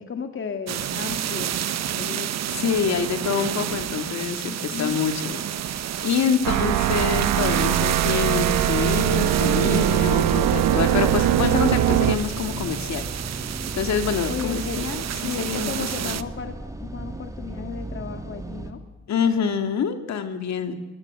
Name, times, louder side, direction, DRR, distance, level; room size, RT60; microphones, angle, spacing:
voice 1, 0.0-2.3 4.4-5.0 6.2-6.7 14.3-14.9 15.2-18.8, left 6 dB, 40° left, 6 dB, 2.2 m, -34 dB
sound 1, 0.7-16.2, right 10 dB, 60° right, 1.1 m, -30 dB
voice 2, 2.5-13.0 13.7-16.2 19.1-20.8, left 7 dB, 65° left, 7 dB, 2.7 m, -26 dB
sound 2, 5.9-18.7, right 2 dB, 10° right, 3.0 m, -36 dB
sound 3, 6.4-12.2, right 12 dB, 85° right, 1.3 m, -21 dB
24.0 x 19.5 x 7.8 m, 1.1 s
cardioid pair, 90°, 30 cm